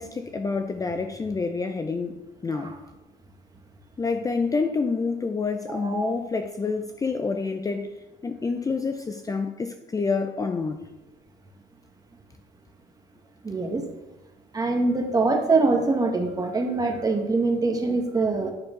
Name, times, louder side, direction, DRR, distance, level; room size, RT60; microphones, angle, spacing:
voice 1, 0.0-2.1 2.4-2.7 4.0-7.9 8.2-10.9, left 4 dB, 20° left, 0.5 m, -28 dB
voice 2, 5.7-6.1 13.4-13.8 14.5-18.5, right 3 dB, 20° right, 1.5 m, -24 dB
9.7 x 4.4 x 5.2 m
cardioid pair, 110°, 17 cm